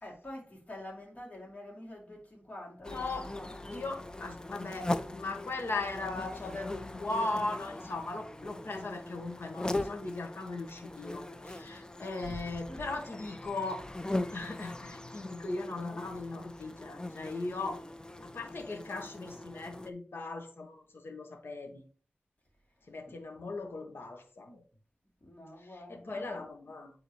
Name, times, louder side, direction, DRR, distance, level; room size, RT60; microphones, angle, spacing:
voice 1, 0.0-3.7 4.6-4.7 12.0-13.4 23.1-23.5 25.2-26.7, left 1 dB, 35° left, 2.9 m, -48 dB
sound 1, 2.8-19.9, left 2 dB, 20° left, 0.5 m, -40 dB
voice 2, 2.9-3.3 3.7-13.9 14.3-17.9 18.3-21.8 22.9-24.6 25.6-26.9, left 3 dB, 70° left, 1.4 m, -38 dB
9.3 x 3.9 x 3.2 m
wide cardioid pair, 65°, 4 cm